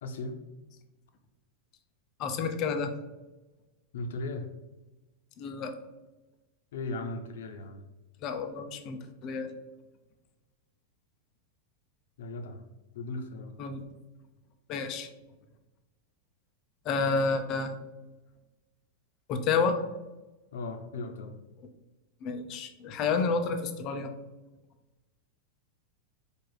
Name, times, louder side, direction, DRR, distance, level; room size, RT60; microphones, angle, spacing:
voice 1, 0.0-0.4 3.9-4.5 6.7-7.8 12.2-12.6 12.9-13.6 20.5-21.4 23.2-23.3, left 2 dB, 80° left, 6 dB, 0.7 m, -37 dB
voice 2, 2.2-2.9 5.4-5.7 8.2-9.5 13.6-13.8 14.7-15.1 16.8-17.7 19.3-19.8 22.2-24.1, left 4 dB, 30° left, 7 dB, 0.4 m, -30 dB
4.5 x 2.4 x 4.7 m, 1.1 s
supercardioid pair, 170°, 0 cm